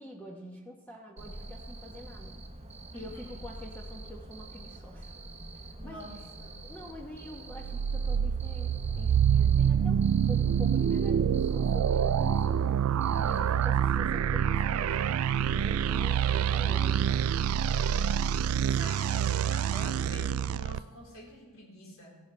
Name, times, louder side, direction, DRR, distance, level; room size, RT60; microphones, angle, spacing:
voice 1, 0.0-2.4 2.9-5.1 5.8-6.0 6.6-12.7 13.1-15.2 15.5-17.3, left 1 dB, 10° left, -1 dB, 1.0 m, -46 dB
Cricket, 1.2-13.7, right 2 dB, 30° right, 1.0 m, -46 dB
voice 2, 2.9-3.4 5.8-6.6 18.7-22.2, left 1 dB, 75° left, -4 dB, 4.0 m, -47 dB
sound 1, 7.5-20.8, right 8 dB, 90° right, 0.3 m, -26 dB
15.5 x 11.0 x 3.3 m, 1.3 s
head